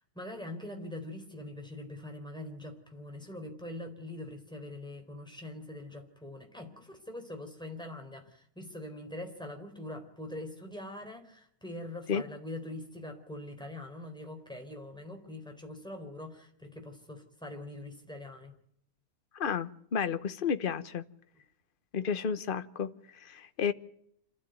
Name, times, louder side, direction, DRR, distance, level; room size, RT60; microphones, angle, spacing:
voice 1, 0.0-18.5, left 1 dB, 5° left, 3 dB, 4.1 m, -43 dB
voice 2, 19.3-21.0 21.9-23.7, left 7 dB, 40° left, 11 dB, 1.1 m, -32 dB
27.0 x 13.5 x 9.3 m, 0.73 s
omnidirectional pair, 1.6 m